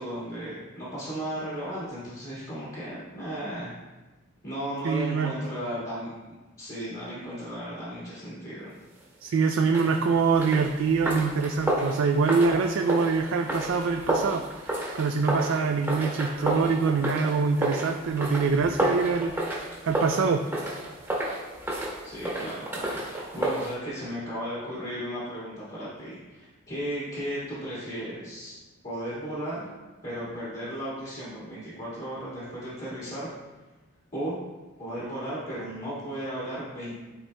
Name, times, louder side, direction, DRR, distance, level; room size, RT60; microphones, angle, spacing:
voice 1, 0.0-3.7 4.4-6.1 6.6-8.7 22.0-28.6 28.8-29.8 30.0-33.3 34.1-34.4 34.8-37.0, equal, 40° left, -10 dB, 1.8 m, -35 dB
voice 2, 4.8-5.4 9.2-20.4, right 4 dB, 60° right, 4 dB, 0.3 m, -25 dB
sound 1, 9.7-23.7, right 1 dB, 10° right, 1.0 m, -31 dB
9.9 x 4.3 x 2.2 m, 1.2 s
head